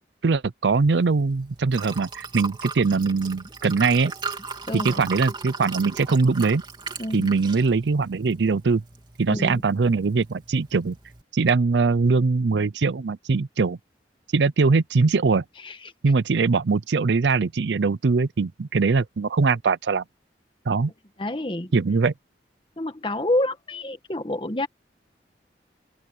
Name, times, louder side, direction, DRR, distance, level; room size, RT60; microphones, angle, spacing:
voice 1, 0.2-4.1 4.7-6.6 7.1-8.8 9.2-11.0 11.3-13.8 14.3-15.4 16.0-20.0 20.7-20.9 21.7-22.1, right 4 dB, 80° right, 0.5 m, -22 dB
Liquid, 0.7-11.2, right 4 dB, 25° right, 3.2 m, -38 dB
voice 2, 4.7-5.1 7.0-7.3 9.3-9.6 15.6-15.9 21.2-21.7 22.8-24.7, left 1 dB, 30° left, 1.4 m, -28 dB
open air
head